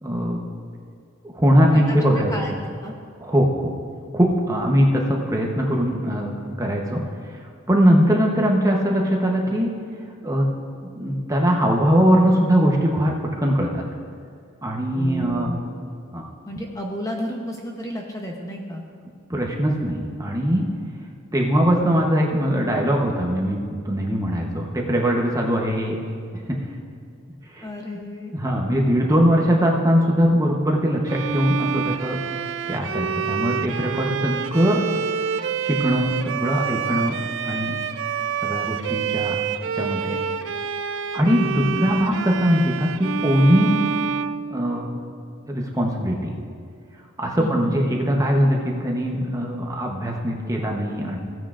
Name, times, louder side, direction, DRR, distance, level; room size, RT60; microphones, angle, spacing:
voice 1, 0.0-0.4 1.3-2.3 3.2-3.7 4.1-6.3 6.6-7.0 7.3-9.7 10.2-10.4 10.9-13.8 14.6-15.5 16.1-16.3 19.3-20.6 21.3-23.6 23.8-26.0 27.5-27.7 28.3-32.2 32.7-34.8 35.6-37.2 37.4-37.8 38.4-39.4 39.7-40.1 41.1-43.8 44.5-44.9 45.5-46.3 47.2-51.2, equal, 15° right, 0 dB, 0.8 m, -21 dB
voice 2, 1.7-2.9 4.6-4.7 14.9-15.8 16.4-18.8 27.6-28.3 41.5-41.8 47.4-47.8, equal, 15° left, 0 dB, 0.7 m, -32 dB
Bowed string instrument, 31.1-45.1, right 7 dB, 60° right, 0.3 m, -27 dB
16.0 x 9.2 x 2.5 m, 2.2 s
head